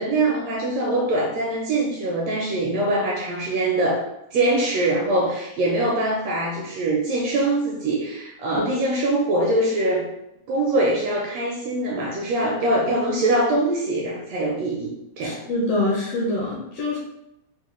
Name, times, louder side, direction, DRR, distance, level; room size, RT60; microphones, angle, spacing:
voice 1, 0.0-4.0 4.3-10.1 10.5-14.9 15.2-15.4, right 2 dB, 80° right, -2 dB, 1.5 m, -23 dB
voice 2, 15.2-17.0, left 2 dB, 70° left, -3 dB, 1.5 m, -25 dB
5.4 x 2.1 x 3.1 m, 0.82 s
omnidirectional pair, 3.4 m